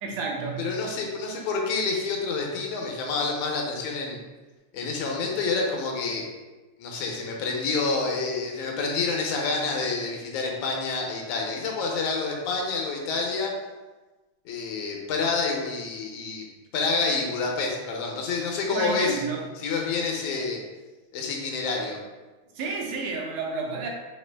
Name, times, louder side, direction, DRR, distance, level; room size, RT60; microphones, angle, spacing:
voice 1, 0.0-0.7 18.7-19.4 22.6-23.9, right 4 dB, 80° right, 0 dB, 2.0 m, -30 dB
voice 2, 0.6-4.2 4.7-6.2 6.8-13.5 14.5-16.5 16.7-19.2 19.6-20.6 21.1-22.0, left 4 dB, 80° left, 0 dB, 2.0 m, -28 dB
5.1 x 2.9 x 3.3 m, 1.2 s
omnidirectional pair, 3.4 m